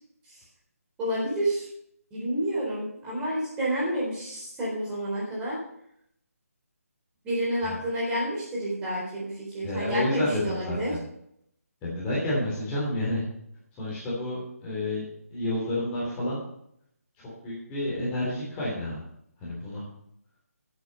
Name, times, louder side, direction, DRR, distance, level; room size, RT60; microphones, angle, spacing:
voice 1, 1.0-1.7 2.1-5.6 7.2-10.9, equal, 10° right, -6 dB, 4.1 m, -29 dB
voice 2, 9.6-11.0 11.8-13.2 13.8-15.0 15.3-16.4 17.2-19.0 19.4-19.8, left 1 dB, 15° left, -7 dB, 3.3 m, -30 dB
10.5 x 8.2 x 5.6 m, 0.73 s
figure-of-eight pair, 150°, 8 cm